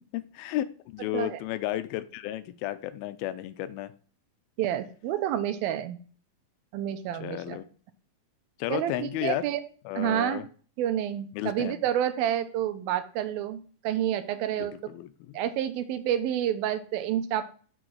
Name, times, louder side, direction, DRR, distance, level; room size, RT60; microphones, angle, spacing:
voice 1, 0.3-0.6 0.9-3.9 7.2-7.6 8.6-9.4 9.9-10.5 11.3-11.8 14.5-15.4, left 14 dB, 90° left, 13 dB, 2.6 m, -33 dB
voice 2, 4.6-6.0 6.7-7.6 8.7-9.6 10.0-10.4 10.8-14.9 15.3-17.5, right 10 dB, 80° right, 9 dB, 2.6 m, -29 dB
6.5 x 6.4 x 4.6 m, 0.41 s
omnidirectional pair, 4.2 m